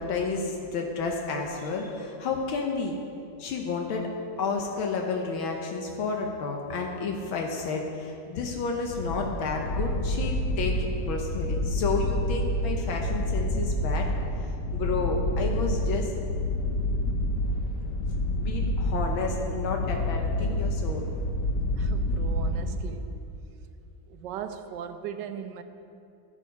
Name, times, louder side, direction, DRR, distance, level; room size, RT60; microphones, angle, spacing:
voice 1, 0.0-3.0 3.4-4.1 4.4-14.1 14.7-16.1 18.4-21.0, left 4 dB, 85° left, 1.7 m, -31 dB
sound 1, 8.9-23.1, left 1 dB, 60° left, 1.0 m, -28 dB
voice 2, 21.8-23.3 24.1-25.6, right 7 dB, 70° right, 1.2 m, -38 dB
10.5 x 10.0 x 5.3 m
omnidirectional pair, 2.2 m